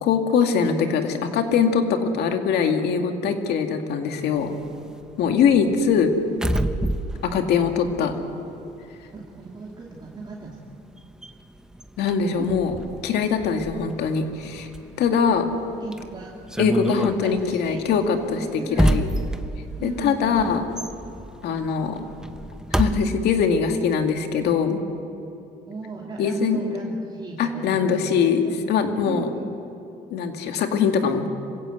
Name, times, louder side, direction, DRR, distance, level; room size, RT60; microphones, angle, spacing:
voice 1, 0.0-4.5 5.2-6.1 7.2-8.2 12.0-12.7 13.0-14.7 15.0-15.5 16.6-19.1 19.8-20.6 21.4-22.0 22.7-24.8 26.2-26.6 27.4-28.4 28.7-29.3 30.1-31.3, left 6 dB, 75° left, 5 dB, 2.3 m, -22 dB
sound 1, 4.4-8.8 9.1-23.0, right 1 dB, 5° right, 1.0 m, -29 dB
voice 2, 9.1-10.6 12.4-12.5 15.8-17.8 18.3-19.1 19.8-20.7 25.7-28.1 28.4-28.6 29.0-29.4, right 3 dB, 25° right, -2 dB, 2.6 m, -36 dB
26.5 x 16.5 x 7.9 m, 2.7 s
cardioid pair, 110°, 17 cm